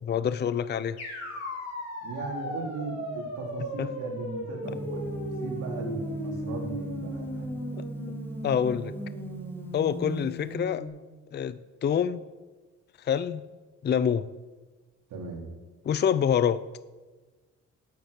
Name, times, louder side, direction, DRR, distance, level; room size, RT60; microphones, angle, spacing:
voice 1, 0.0-1.0 3.8-3.9 8.4-8.9 9.7-10.9 11.3-12.2 13.0-13.4 13.8-14.3 15.8-16.6, left 8 dB, 35° left, 14 dB, 0.5 m, -26 dB
sound 1, 1.0-10.9, left 1 dB, 55° left, 5.0 m, -37 dB
voice 2, 2.0-7.5 15.1-15.4, right 4 dB, 85° right, 0 dB, 3.3 m, -38 dB
Gong, 4.6-10.5, right 2 dB, 5° left, 2.1 m, -38 dB
9.3 x 8.4 x 8.1 m, 1.3 s
cardioid pair, 90°, 30 cm